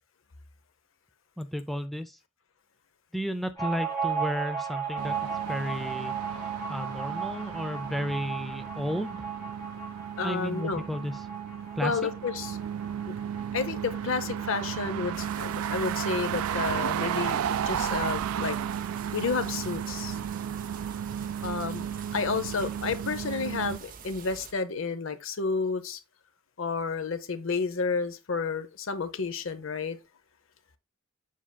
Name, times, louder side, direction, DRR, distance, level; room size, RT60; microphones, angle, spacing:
voice 1, 1.4-2.2 3.1-5.2 5.5-6.1 6.7-9.3 10.2-11.3 11.7-12.1, equal, ahead, 0.3 m, -33 dB
sound 1, 3.6-16.7 17.0-17.1 17.3-18.1, right 6 dB, 20° left, 2.9 m, -36 dB
sound 2, 5.0-23.8, right 9 dB, 85° right, 0.3 m, -34 dB
voice 2, 10.2-10.8 11.8-12.6 13.1-13.2 13.5-18.6 19.1-20.2 21.4-21.9 22.1-26.0 26.6-30.0, left 4 dB, 65° left, 0.7 m, -31 dB
sound 3, 15.1-24.5, right 5 dB, 40° right, 0.7 m, -46 dB
7.4 x 5.7 x 2.2 m
head